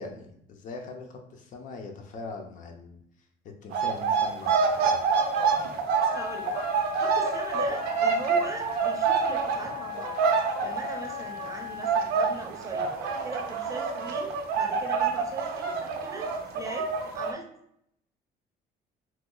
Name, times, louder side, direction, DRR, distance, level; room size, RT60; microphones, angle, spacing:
voice 1, 0.0-3.0 3.6-5.0, left 3 dB, 55° left, 3 dB, 0.6 m, -41 dB
sound 1, 3.7-11.6 11.8-17.3, right 5 dB, 85° right, 0.5 m, -27 dB
sound 2, 6.1-12.1, left 10 dB, 85° left, 0.8 m, -38 dB
voice 2, 6.1-6.5 7.0-17.5, right 3 dB, 20° right, 1 dB, 0.6 m, -40 dB
3.1 x 2.0 x 3.8 m, 0.71 s
cardioid pair, 115°, 16 cm